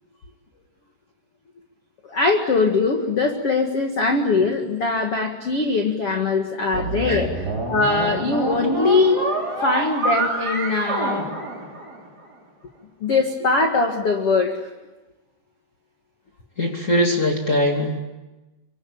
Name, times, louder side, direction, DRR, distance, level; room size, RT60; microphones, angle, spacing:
voice 1, 2.0-7.3 7.7-9.2 9.6-11.3 13.0-14.7, left 3 dB, 65° left, 3 dB, 1.4 m, -21 dB
sound 1, 6.7-12.2, right 2 dB, 20° right, 3.9 m, -27 dB
voice 2, 16.6-18.0, left 1 dB, 25° left, 1 dB, 1.6 m, -21 dB
26.0 x 24.5 x 8.8 m, 1.1 s
omnidirectional pair, 6.0 m